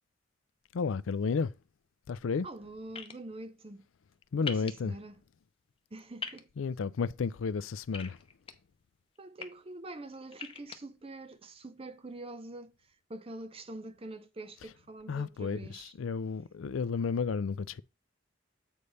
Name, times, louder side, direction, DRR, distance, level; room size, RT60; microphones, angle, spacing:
voice 1, 0.7-1.5 2.1-2.5 4.3-5.0 6.6-8.2 15.1-17.8, left 5 dB, 90° left, 0.4 m, -32 dB
voice 2, 2.4-3.9 4.4-5.1 5.9-6.5 9.2-12.7 13.1-15.9, right 2 dB, 30° right, 0.6 m, -45 dB
Lego Clicks, 2.9-3.1 4.5-4.7 6.2-6.4 7.9-8.5 9.2-9.5 10.3-10.8, left 5 dB, 30° left, 0.7 m, -39 dB
8.0 x 3.3 x 5.5 m
head